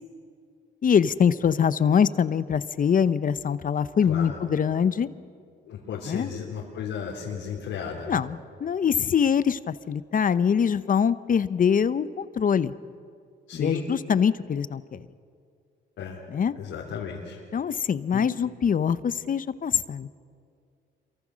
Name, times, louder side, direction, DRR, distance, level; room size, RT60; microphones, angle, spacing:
voice 1, 0.8-5.1 6.1-6.3 8.1-12.7 13.5-15.0 16.3-16.5 17.5-20.2, left 7 dB, 45° left, 15 dB, 0.8 m, -24 dB
voice 2, 4.1-4.4 5.7-8.2 13.5-13.8 16.0-16.2 16.5-17.4 18.1-18.2, left 6 dB, 80° left, -3 dB, 3.5 m, -34 dB
27.5 x 23.5 x 6.3 m, 2.3 s
cardioid pair, 90°, 20 cm